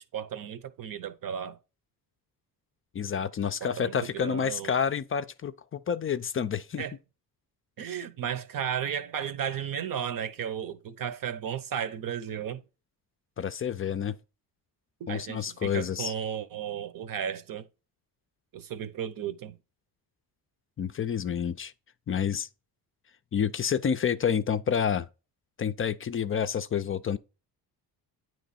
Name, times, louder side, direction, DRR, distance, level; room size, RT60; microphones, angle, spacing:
voice 1, 0.0-1.6 3.6-4.7 6.8-6.9 7.8-12.6 15.0-17.7 18.5-19.6, right 8 dB, 55° right, 0.8 m, -34 dB
voice 2, 2.9-6.8 13.4-14.1 15.1-16.1 20.8-21.7 22.1-22.5 23.3-25.1 25.6-27.2, left 7 dB, 30° left, 0.4 m, -29 dB
9.0 x 3.1 x 4.1 m
cardioid pair, 85°, 41 cm